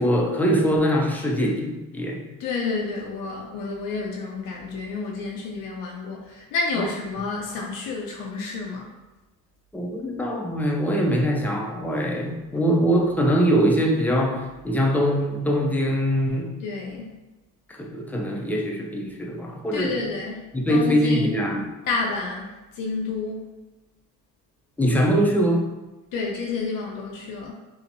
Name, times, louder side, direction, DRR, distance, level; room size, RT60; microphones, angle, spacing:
voice 1, 0.0-2.2 6.8-6.9 9.7-16.5 17.7-19.9 20.5-21.7 24.8-25.7, equal, 5° left, 0 dB, 0.3 m, -22 dB
voice 2, 2.4-8.9 16.6-17.2 19.7-21.4 21.9-23.5 26.1-27.5, left 4 dB, 75° left, -2 dB, 0.5 m, -30 dB
2.8 x 2.0 x 2.5 m, 1.1 s
cardioid pair, 90°, 34 cm